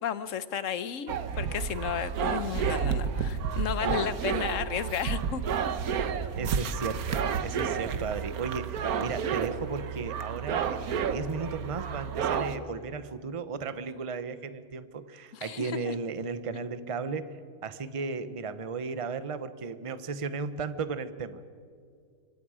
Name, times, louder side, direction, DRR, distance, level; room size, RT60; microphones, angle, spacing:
voice 1, 0.0-5.4 15.3-15.9, left 8 dB, 65° left, 14 dB, 1.2 m, -33 dB
sound 1, 1.1-12.6, right 7 dB, 90° right, 1.5 m, -31 dB
voice 2, 6.4-21.4, right 4 dB, 30° right, 12 dB, 0.8 m, -35 dB
26.5 x 24.5 x 5.0 m, 2.2 s
omnidirectional pair, 1.5 m